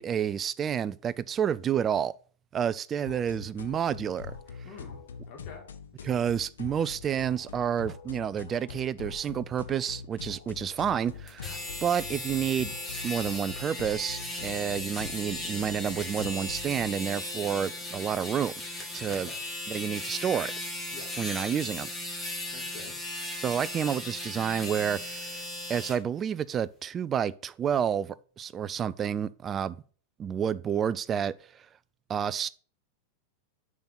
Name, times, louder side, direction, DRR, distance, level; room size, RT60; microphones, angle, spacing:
voice 1, 0.0-2.1 2.5-4.4 6.0-12.7 13.0-18.5 18.9-19.3 19.7-20.5 21.2-21.9 23.4-25.4 25.7-29.8 30.2-31.6 32.1-32.5, right 8 dB, 25° right, 0.3 m, -29 dB
sound 1, 3.0-16.9, left 6 dB, 65° left, 0.7 m, -44 dB
voice 2, 4.6-5.7 19.0-19.4 20.9-21.1 22.5-23.1, left 4 dB, 40° left, 2.3 m, -47 dB
sound 2, 11.3-26.0, left 1 dB, 5° left, 1.9 m, -37 dB
6.8 x 3.8 x 5.7 m
figure-of-eight pair, 90°, 0 cm